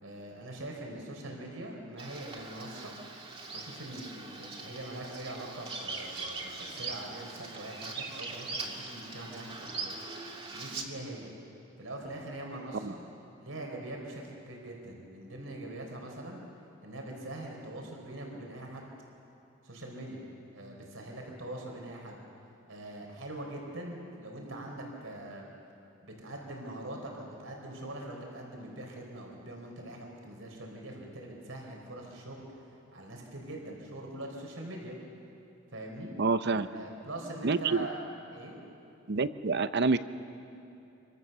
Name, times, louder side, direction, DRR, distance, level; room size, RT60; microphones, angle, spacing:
voice 1, 0.0-2.9 3.5-10.0 10.5-11.3 11.8-13.0 13.4-16.4 16.8-18.8 19.6-20.3 20.5-22.2 22.7-25.5 26.0-32.6 32.9-35.0 35.7-36.1 36.6-38.0 38.3-38.6, right 1 dB, 80° right, 0 dB, 4.2 m, -42 dB
Bird vocalization bird call bird song, 2.0-10.8, right 3 dB, 30° right, 2.3 m, -41 dB
voice 2, 36.2-36.7 37.4-37.9 39.1-40.0, right 4 dB, 55° right, 12 dB, 0.8 m, -27 dB
26.0 x 24.5 x 6.8 m, 2.7 s
head